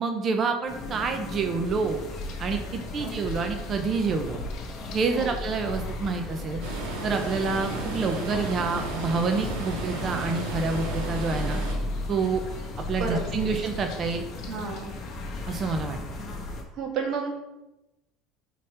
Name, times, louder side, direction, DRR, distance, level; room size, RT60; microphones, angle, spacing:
voice 1, 0.0-2.0 2.4-4.4 4.9-6.6 7.0-11.6 12.1-12.4 12.8-14.2 15.5-16.0, right 4 dB, 35° right, 5 dB, 0.7 m, -28 dB
sound 1, 0.7-16.6, left 2 dB, 35° left, 1.5 m, -35 dB
sound 2, 1.6-15.8, left 4 dB, 55° left, 2.1 m, -49 dB
sound 3, 6.6-11.7, right 3 dB, 80° right, 2.0 m, -34 dB
voice 2, 13.0-13.6 14.5-14.9 16.7-17.4, right 4 dB, 50° right, 1 dB, 1.6 m, -32 dB
5.1 x 4.4 x 5.0 m, 0.97 s
supercardioid pair, 105°, 0 cm